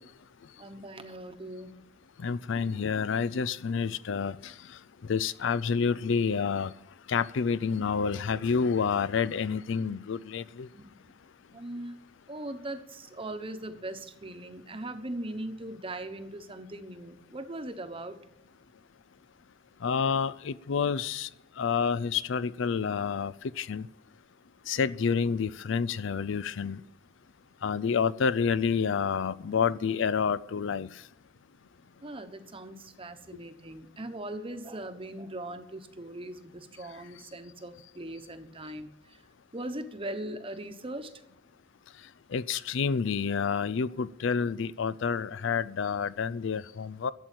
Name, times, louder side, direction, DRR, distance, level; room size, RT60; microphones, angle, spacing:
voice 1, 0.6-1.7 10.7-11.0 11.5-12.0 12.3-18.2 32.0-39.2 39.5-41.1, right 1 dB, 30° right, 1.0 m, -40 dB
voice 2, 2.2-4.5 5.1-6.7 7.1-10.7 19.8-21.3 21.6-23.8 24.7-26.8 27.6-30.9 42.3-47.1, left 6 dB, 65° left, 0.4 m, -28 dB
12.5 x 7.8 x 9.0 m
head